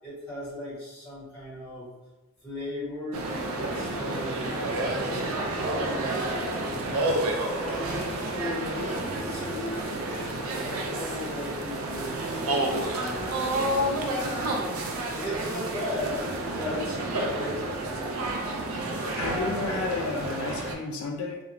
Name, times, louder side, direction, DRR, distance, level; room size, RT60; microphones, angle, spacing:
voice 1, 0.0-1.9 2.4-6.4 6.9-7.2 7.6-14.7 15.1-18.1, left 1 dB, 5° left, -9 dB, 1.1 m, -37 dB
sound 1, 3.1-20.7, right 1 dB, 75° right, 0.4 m, -30 dB
voice 2, 6.7-7.0 18.7-18.8 19.2-21.4, left 4 dB, 75° left, 2 dB, 0.3 m, -32 dB
2.4 x 2.2 x 2.9 m, 1.0 s
head